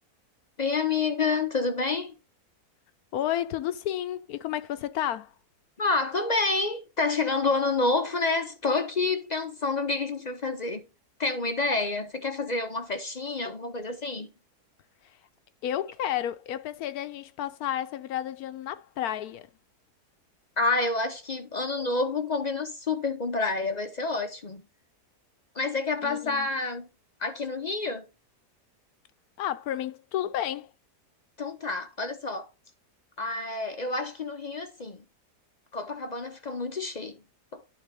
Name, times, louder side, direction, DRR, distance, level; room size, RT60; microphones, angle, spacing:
voice 1, 0.6-2.1 5.8-10.8 11.2-14.3 20.6-24.6 25.5-26.9 27.2-28.0 31.4-32.5 33.2-35.0 35.7-37.2 37.5-37.6, left 3 dB, 50° left, 0.5 m, -28 dB
voice 2, 3.1-5.3 15.6-19.5 26.0-26.5 29.4-30.7, left 11 dB, 75° left, 1.0 m, -31 dB
11.5 x 4.0 x 3.4 m
omnidirectional pair, 1.7 m